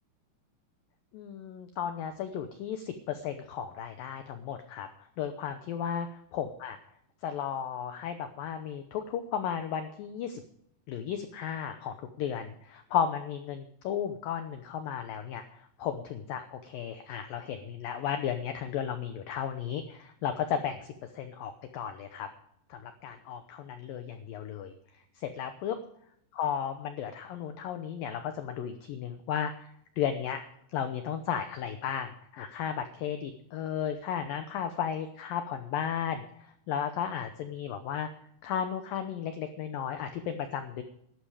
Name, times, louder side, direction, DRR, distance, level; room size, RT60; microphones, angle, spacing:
voice 1, 1.1-4.9 5.2-6.1 6.3-6.8 7.2-10.4 10.9-20.8 21.1-22.3 22.7-24.7 25.2-25.8 26.3-29.7 30.0-30.4 30.7-36.3 36.7-38.1 38.4-40.8, left 8 dB, 90° left, 8 dB, 2.0 m, -34 dB
13.5 x 12.0 x 4.9 m, 0.71 s
omnidirectional pair, 5.3 m